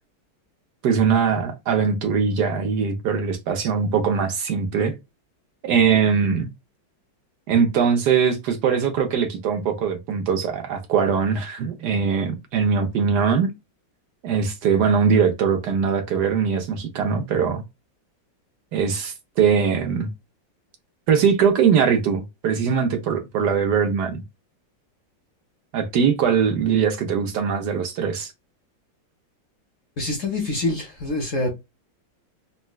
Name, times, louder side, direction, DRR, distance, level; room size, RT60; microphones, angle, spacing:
voice 1, 0.8-4.9 5.6-6.5 7.5-13.5 14.2-17.6 18.7-20.1 21.1-24.2 25.7-28.3, right 6 dB, 70° right, 1.2 m, -21 dB
voice 2, 30.0-31.5, left 2 dB, 55° left, 1.0 m, -26 dB
4.0 x 2.2 x 2.2 m
omnidirectional pair, 2.0 m